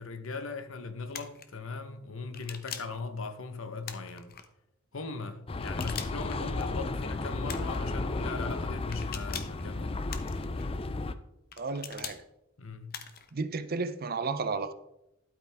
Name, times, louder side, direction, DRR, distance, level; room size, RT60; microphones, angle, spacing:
voice 1, 0.0-4.3 4.9-10.1 12.6-13.0, left 4 dB, 70° left, 1.0 m, -39 dB
sound 1, 1.1-1.5 2.3-3.0 3.8-4.5 5.6-6.4 7.5-7.8 8.9-9.6 10.1-10.7 11.5-12.2 12.9-13.3, left 8 dB, 45° left, 0.9 m, -42 dB
sound 2, 5.5-11.1, left 2 dB, 25° left, 0.5 m, -33 dB
voice 2, 11.6-12.2 13.3-14.7, right 4 dB, 45° right, 0.6 m, -33 dB
12.0 x 8.3 x 3.5 m
head